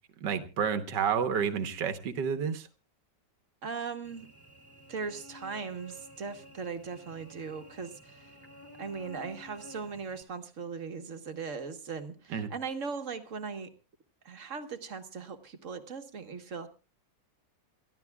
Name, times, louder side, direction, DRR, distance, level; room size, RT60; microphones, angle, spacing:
voice 1, 0.2-2.7 12.3-12.5, right 7 dB, 75° right, 1.8 m, -30 dB
voice 2, 3.6-4.3 4.9-8.3 8.8-13.7 14.2-16.7, right 5 dB, 45° right, 1.5 m, -39 dB
Cricket / Buzz, 4.0-10.2, equal, 5° left, 2.6 m, -52 dB
28.5 x 13.5 x 2.3 m
omnidirectional pair, 1.9 m